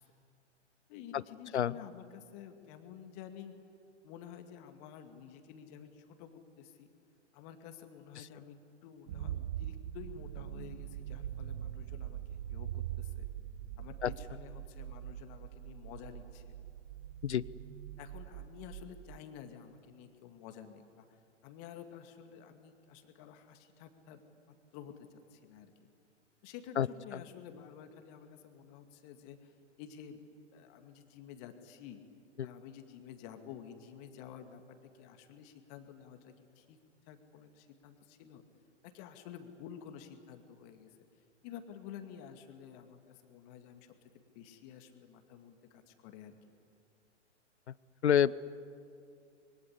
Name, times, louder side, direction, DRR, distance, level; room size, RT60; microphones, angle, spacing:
voice 1, 0.9-3.6 4.0-6.9 7.3-8.6 8.8-13.3 13.8-16.5 18.0-24.2 24.7-25.7 26.4-30.2 30.5-32.0 32.4-36.8 37.1-38.4 38.8-41.0 41.4-43.9 44.3-46.3, left 9 dB, 35° left, 7 dB, 2.1 m, -51 dB
sound 1, 9.1-19.2, right 12 dB, 45° right, 0.8 m, -43 dB
voice 2, 48.0-48.4, left 9 dB, 65° left, 20 dB, 0.8 m, -26 dB
26.0 x 22.5 x 9.9 m, 2.4 s
figure-of-eight pair, 115°, 36 cm